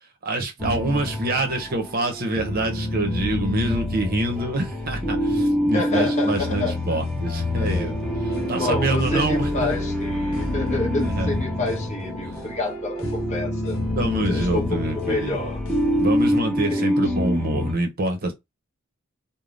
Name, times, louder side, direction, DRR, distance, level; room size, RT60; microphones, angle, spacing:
voice 1, 0.2-8.0 8.2-9.9 11.1-11.3 14.0-15.4 16.0-18.3, right 2 dB, 45° right, 0.7 m, -26 dB
sound 1, 0.6-17.7, left 1 dB, ahead, 0.8 m, -26 dB
voice 2, 5.7-7.0 7.5-7.9 8.6-13.8 14.3-15.6 16.5-17.2, left 2 dB, 35° left, 1.1 m, -29 dB
sound 2, 5.9-16.4, left 3 dB, 65° left, 0.6 m, -43 dB
3.3 x 2.1 x 2.5 m
head